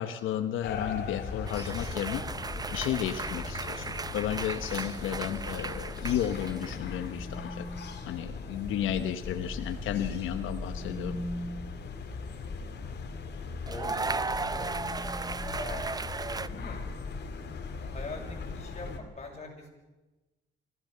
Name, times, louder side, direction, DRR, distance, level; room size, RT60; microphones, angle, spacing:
voice 1, 0.0-2.2 2.7-3.9 4.1-7.7 8.0-11.2, left 10 dB, 90° left, 8 dB, 1.1 m, -33 dB
sound 1, 0.6-19.0, left 4 dB, 55° left, 2.8 m, -39 dB
sound 2, 1.5-7.0 7.2-7.7 9.6-9.8 13.7-16.5, right 4 dB, 20° right, 0.6 m, -36 dB
sound 3, 6.2-8.1 10.2-11.9 13.9-16.2, equal, ahead, 1.7 m, -43 dB
voice 2, 13.7-14.7 15.5-16.0 16.3-16.8 17.8-19.7, left 2 dB, 35° left, 0 dB, 6.7 m, -43 dB
24.5 x 15.5 x 6.8 m, 1.1 s
cardioid pair, 90°, 20 cm